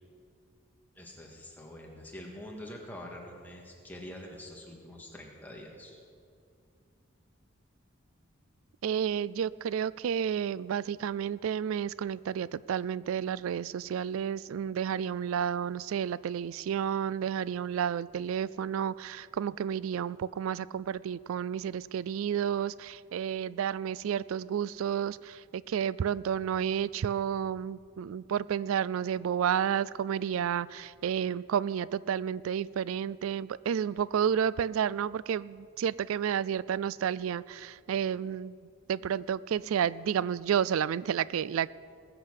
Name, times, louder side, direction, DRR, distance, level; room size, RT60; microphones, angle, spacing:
voice 1, 1.0-6.0, left 1 dB, 10° left, -1 dB, 1.9 m, -45 dB
voice 2, 8.8-38.6 38.9-41.7, right 8 dB, 90° right, 20 dB, 0.3 m, -31 dB
20.0 x 8.0 x 6.6 m, 2.3 s
head